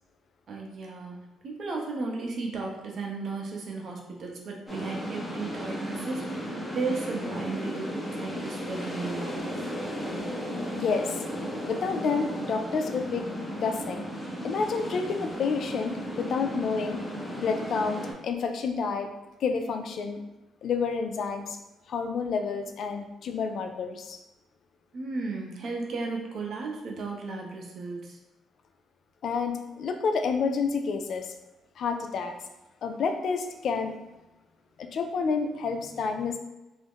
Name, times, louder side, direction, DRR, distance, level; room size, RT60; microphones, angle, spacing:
voice 1, 0.5-1.2 1.4-9.7 24.9-28.2, right 3 dB, 60° right, 0 dB, 0.6 m, -35 dB
sound 1, 4.7-18.1, equal, 10° left, 0.7 m, -35 dB
voice 2, 10.8-11.2 11.7-13.3 13.6-14.0 14.4-17.0 17.4-19.1 19.4-20.2 20.6-21.6 21.9-24.2 29.2-31.3 31.8-32.3 32.8-33.9 34.8-36.4, left 5 dB, 65° left, 6 dB, 0.3 m, -29 dB
2.4 x 2.0 x 3.5 m, 1.0 s
cardioid pair, 90°, 0 cm